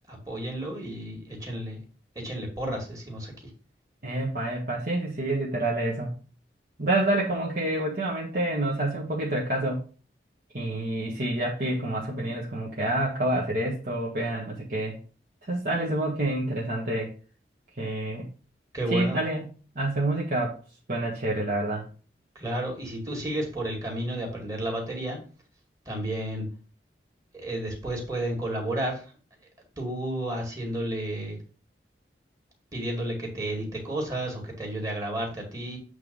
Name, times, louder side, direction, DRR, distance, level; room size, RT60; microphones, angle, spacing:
voice 1, 0.1-1.8 2.2-3.3 18.7-19.2 22.3-25.2 25.9-26.5 27.3-29.1 29.8-31.4 32.7-35.8, right 1 dB, 20° right, 0 dB, 2.2 m, -32 dB
voice 2, 4.0-6.1 6.8-9.8 10.5-15.0 15.4-17.1 17.8-18.3 18.9-19.5 19.7-20.6 20.9-21.9, right 1 dB, 55° right, -5 dB, 1.6 m, -28 dB
8.2 x 3.4 x 5.4 m, 0.37 s
head